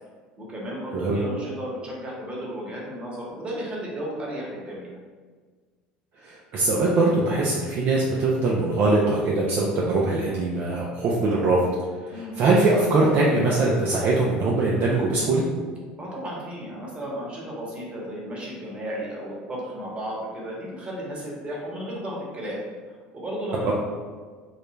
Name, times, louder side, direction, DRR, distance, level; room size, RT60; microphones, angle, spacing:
voice 1, 0.4-4.9 12.1-12.3 16.0-22.6 23.1-23.7, equal, 25° right, -4 dB, 1.0 m, -34 dB
voice 2, 6.2-11.6 12.1-15.4 23.6-23.7, right 2 dB, 50° right, -4 dB, 0.4 m, -22 dB
2.4 x 2.0 x 3.1 m, 1.5 s
hypercardioid pair, 80°, 4 cm